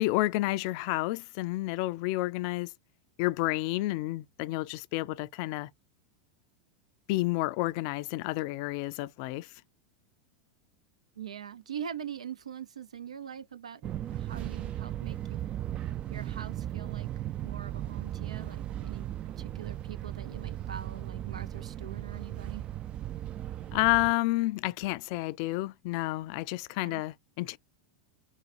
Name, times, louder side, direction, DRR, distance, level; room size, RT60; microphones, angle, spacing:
voice 1, 0.0-2.7 3.2-5.7 7.1-9.5 23.7-27.6, left 19 dB, 55° left, 0.3 m, -30 dB
voice 2, 11.1-15.4 15.8-17.1 17.4-19.1 19.4-22.7 26.8-27.0, right 8 dB, 85° right, 0.6 m, -43 dB
Fixed-wing aircraft airplane, 13.8-24.1, right 12 dB, 35° right, 0.3 m, -37 dB
4.0 x 2.2 x 4.2 m
hypercardioid pair, 95°, 3 cm